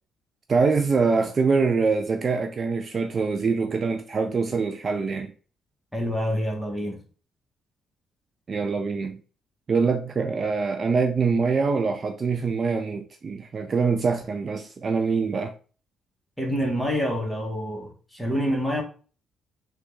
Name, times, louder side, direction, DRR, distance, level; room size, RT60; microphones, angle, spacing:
voice 1, 0.5-5.3 8.5-9.2 9.7-15.5, right 4 dB, 40° right, 0.3 m, -24 dB
voice 2, 5.9-7.0 16.4-18.8, equal, ahead, 1.1 m, -27 dB
3.4 x 2.3 x 3.1 m
cardioid pair, 90°, 0 cm